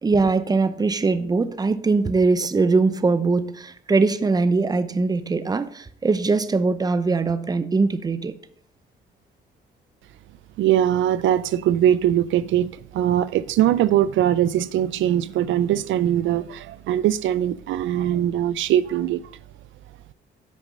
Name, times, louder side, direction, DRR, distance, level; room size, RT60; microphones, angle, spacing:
voice 1, 0.0-8.3, right 3 dB, 20° right, 0.6 m, -21 dB
voice 2, 10.6-19.2, right 11 dB, 75° right, 0.4 m, -21 dB
8.4 x 5.2 x 5.0 m
cardioid pair, 90°, 20 cm